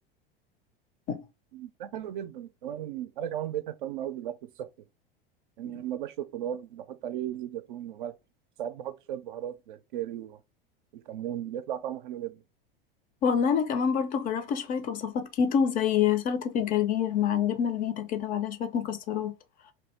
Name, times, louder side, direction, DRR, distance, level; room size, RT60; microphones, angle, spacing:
voice 1, 1.5-4.7 5.6-8.1 8.6-10.4 10.9-12.4, right 11 dB, 60° right, 0.5 m, -36 dB
voice 2, 13.2-19.3, left 7 dB, 30° left, 0.5 m, -27 dB
3.1 x 2.7 x 3.2 m
figure-of-eight pair, 80°, 29 cm